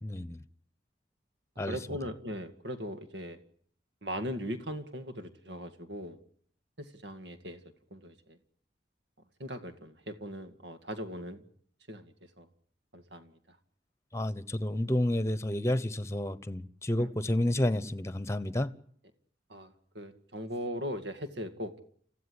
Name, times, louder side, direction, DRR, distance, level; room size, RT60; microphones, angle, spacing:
voice 1, 0.0-0.4 1.6-1.8 14.1-18.7, left 1 dB, 15° left, 1.0 m, -30 dB
voice 2, 1.7-3.4 4.0-6.2 6.8-7.6 7.9-8.4 9.4-11.4 11.9-12.5 12.9-13.3 17.0-17.1 19.5-21.8, equal, 80° right, 2.2 m, -39 dB
28.0 x 15.5 x 9.8 m
head